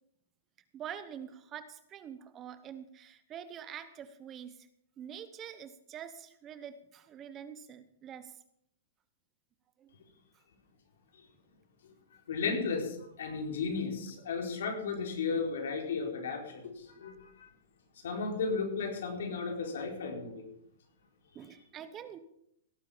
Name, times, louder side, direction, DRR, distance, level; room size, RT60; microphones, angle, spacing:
voice 1, 0.7-4.7 5.0-8.3 9.8-9.9 21.3-22.2, right 9 dB, 20° right, 13 dB, 0.8 m, -45 dB
voice 2, 12.3-17.5 18.0-20.4, left 4 dB, 80° left, 2 dB, 4.2 m, -34 dB
17.5 x 8.2 x 5.6 m, 0.75 s
hypercardioid pair, 150°, 0 cm